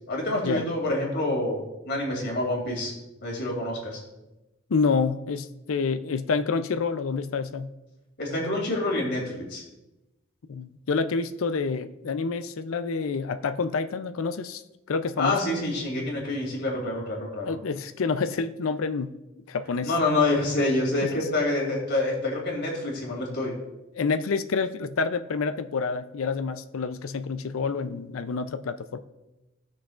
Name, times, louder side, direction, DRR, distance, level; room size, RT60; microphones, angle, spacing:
voice 1, 0.1-2.9 3.2-4.0 8.2-9.6 15.2-17.6 19.8-23.5, left 2 dB, 60° left, -1 dB, 2.7 m, -27 dB
voice 2, 4.7-7.7 10.5-14.6 14.9-15.4 17.4-19.2 19.5-19.9 21.0-21.2 24.0-29.0, left 4 dB, 80° left, 10 dB, 0.5 m, -28 dB
17.5 x 6.3 x 2.4 m, 1.0 s
head